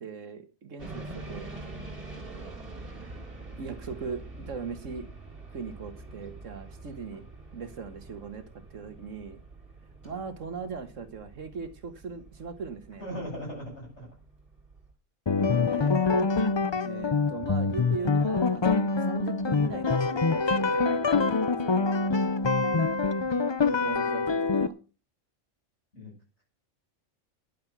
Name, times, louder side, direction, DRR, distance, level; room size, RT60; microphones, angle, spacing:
voice 1, 0.0-1.4 2.1-2.5 3.6-5.1 5.5-7.2 7.5-8.4 8.7-9.4 10.0-13.0 15.7-16.0 16.8-21.0 21.5-21.7 23.4-24.7, right 5 dB, 70° right, 9 dB, 1.8 m, -39 dB
sound 1, 0.8-14.9, right 2 dB, 45° right, 3.2 m, -45 dB
voice 2, 13.0-14.1 15.7-16.5 25.9-26.1, equal, 60° left, -1 dB, 8.0 m, -40 dB
sound 2, 15.3-24.7, left 4 dB, 40° left, 0.4 m, -25 dB
10.5 x 9.5 x 6.0 m, 0.35 s
omnidirectional pair, 1.4 m